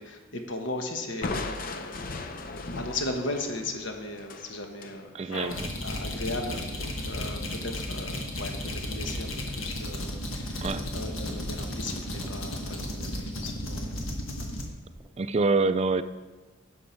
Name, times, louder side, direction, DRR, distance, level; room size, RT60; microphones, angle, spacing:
voice 1, 0.0-5.3 5.8-10.1 10.3-13.9, left 2 dB, 65° left, 4 dB, 1.1 m, -37 dB
Crushing, 1.2-5.0, left 3 dB, 45° left, 0.6 m, -37 dB
voice 2, 5.1-5.7 10.6-10.9 15.2-16.0, right 3 dB, 30° right, 12 dB, 0.3 m, -26 dB
sound 1, 5.3-14.6, left 1 dB, 90° left, 1.5 m, -34 dB
sound 2, 8.8-15.1, right 1 dB, 15° right, 0.7 m, -45 dB
10.5 x 6.5 x 4.4 m, 1.2 s
head